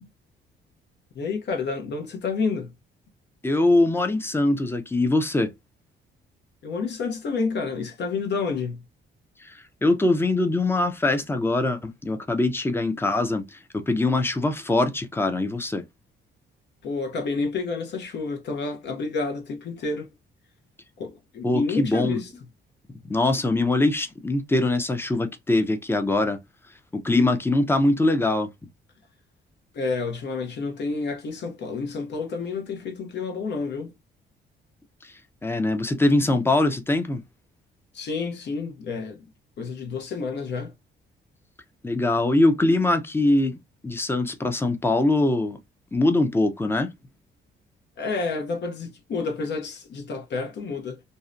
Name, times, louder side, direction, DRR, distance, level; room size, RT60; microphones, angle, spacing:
voice 1, 1.1-2.7 6.6-8.8 16.8-20.1 21.0-22.3 29.7-33.9 37.9-39.3 39.6-40.7 48.0-51.0, left 4 dB, 60° left, 0.7 m, -29 dB
voice 2, 3.4-5.5 9.4-15.8 21.4-22.2 23.1-26.4 26.9-28.5 35.0-35.1 35.4-37.2 41.8-43.6 43.8-45.6 45.9-46.9, left 2 dB, 10° left, 0.5 m, -22 dB
2.7 x 2.1 x 2.4 m
cardioid pair, 90°, 20 cm